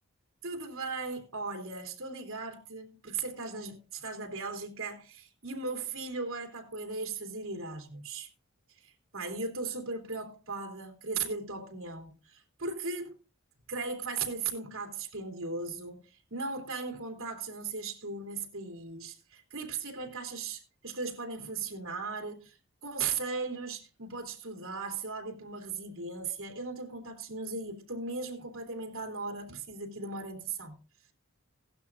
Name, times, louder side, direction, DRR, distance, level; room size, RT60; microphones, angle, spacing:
voice 1, 0.4-8.3 8.8-13.1 13.7-22.6 22.8-30.8, right 4 dB, 75° right, 3.1 m, -37 dB
16.5 x 12.0 x 2.4 m
head